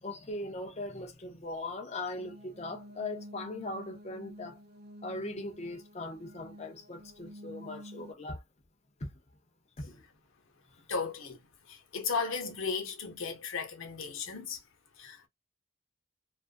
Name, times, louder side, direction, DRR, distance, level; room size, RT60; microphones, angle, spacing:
voice 1, 0.0-4.6 5.0-8.4 9.0-9.1 9.9-10.0, left 2 dB, 35° left, 0.6 m, -39 dB
sound 1, 2.1-8.1, equal, 50° right, 0.7 m, -50 dB
voice 2, 10.9-11.4 11.7-14.6 15.0-15.3, left 5 dB, 85° left, 0.8 m, -35 dB
2.5 x 2.4 x 2.4 m
head